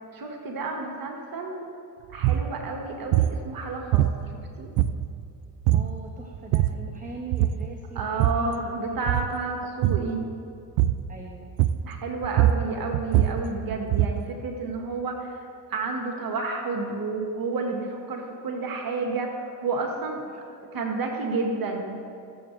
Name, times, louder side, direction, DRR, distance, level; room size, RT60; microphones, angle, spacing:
voice 1, 0.1-1.6 2.1-4.3 4.6-4.7 7.9-10.2 11.8-20.2 20.7-22.0, right 3 dB, 50° right, 2 dB, 1.6 m, -30 dB
sound 1, 2.1-2.5 3.1-3.4 3.9-4.4 4.8-5.2 5.7-6.0 6.3-6.9 7.3-7.7 8.0-8.5 9.0-9.4 9.8-10.1 10.8-11.1 11.6-12.0 12.2-14.3, right 13 dB, 80° right, 0.5 m, -23 dB
voice 2, 5.7-9.1 11.1-11.5 20.3-20.4, right 4 dB, 15° right, 2 dB, 1.2 m, -41 dB
22.0 x 7.5 x 3.3 m, 2.6 s
hypercardioid pair, 55°, 45 cm